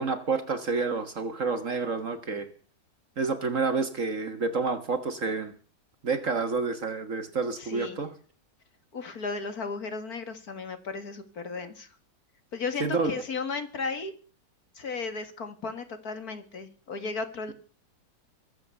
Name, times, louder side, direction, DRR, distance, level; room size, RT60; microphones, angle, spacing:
voice 1, 0.0-2.5 3.2-5.5 6.0-8.1 12.8-13.1, right 4 dB, 45° right, 10 dB, 1.5 m, -29 dB
voice 2, 7.6-8.0 8.9-11.9 12.5-14.1 14.8-17.5, left 4 dB, 55° left, 9 dB, 2.2 m, -35 dB
22.0 x 7.8 x 7.0 m, 0.41 s
omnidirectional pair, 2.0 m